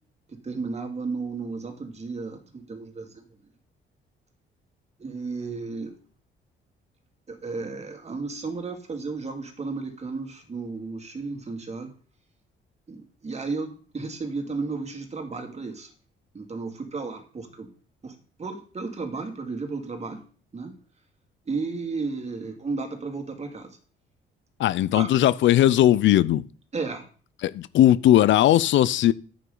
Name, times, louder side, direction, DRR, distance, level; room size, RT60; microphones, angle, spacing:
voice 1, 0.3-3.2 5.0-5.9 7.3-11.9 12.9-15.9 16.3-17.7 18.0-20.2 20.5-20.7 21.5-23.8 24.9-25.1 26.7-27.1, right 4 dB, 35° right, 2.5 m, -33 dB
voice 2, 24.6-26.4 27.4-29.1, left 12 dB, 70° left, 0.5 m, -18 dB
9.6 x 8.5 x 3.9 m
cardioid pair, 90°, 20 cm